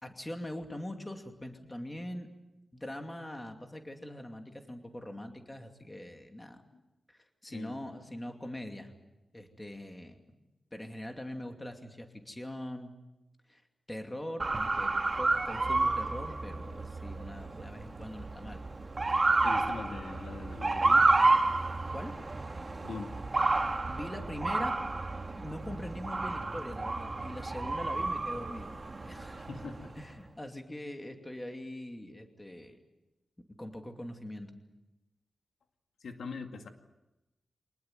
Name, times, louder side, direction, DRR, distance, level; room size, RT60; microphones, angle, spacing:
voice 1, 0.0-2.3 2.7-6.6 7.1-8.9 9.3-10.2 10.7-12.9 13.5-13.6 13.9-14.9 15.2-18.6 21.9-22.2 23.9-24.8 25.3-28.7 29.0-29.4 30.0-32.8 33.6-34.5, left 1 dB, 15° left, 5 dB, 2.5 m, -42 dB
voice 2, 7.4-7.8 19.4-21.1 22.8-23.2 29.4-30.0 36.0-36.7, left 4 dB, 85° left, 5 dB, 2.2 m, -42 dB
Motor vehicle (road) / Siren, 14.4-30.0, right 3 dB, 30° right, 1.8 m, -30 dB
25.0 x 19.5 x 9.2 m, 1.0 s
wide cardioid pair, 135°, 0 cm